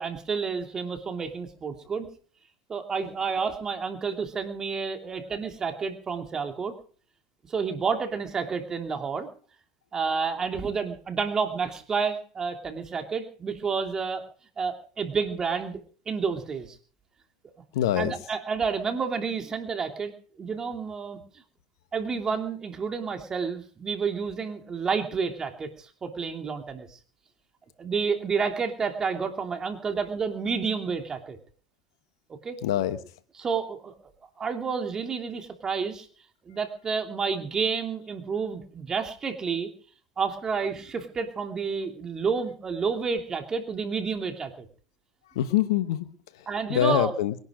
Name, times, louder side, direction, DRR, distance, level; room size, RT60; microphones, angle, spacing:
voice 1, 0.0-2.1 2.7-6.8 7.5-9.3 9.9-14.2 14.6-16.8 18.0-21.2 21.9-27.0 27.8-31.4 32.4-32.6 33.4-33.9 34.4-36.1 36.5-39.7 40.2-44.7 46.5-47.1, right 5 dB, 25° right, 5 dB, 3.0 m, -30 dB
voice 2, 17.7-18.2 32.6-33.0 45.3-47.4, left 11 dB, 80° left, 12 dB, 1.2 m, -25 dB
22.0 x 11.5 x 5.1 m, 0.43 s
supercardioid pair, 100°, 2 cm